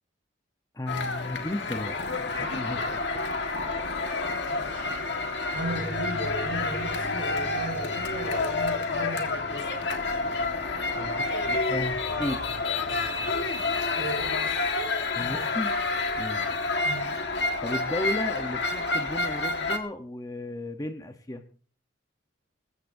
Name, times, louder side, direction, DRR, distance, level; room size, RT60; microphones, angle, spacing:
voice 1, 0.7-3.3 11.0-12.5 15.2-15.7 16.2-16.5 17.6-21.4, left 1 dB, 20° left, 7 dB, 0.8 m, -34 dB
sound 1, 0.9-19.8, left 3 dB, 65° left, 1.5 m, -29 dB
voice 2, 4.5-4.9 5.5-9.7 14.0-14.7 15.2-15.4 16.8-17.1, right 1 dB, 75° right, 4 dB, 5.3 m, -36 dB
sound 2, 5.6-12.7 13.0-13.1 13.4-13.5, left 1 dB, 40° left, 1.2 m, -44 dB
21.0 x 15.0 x 2.6 m, 0.41 s
head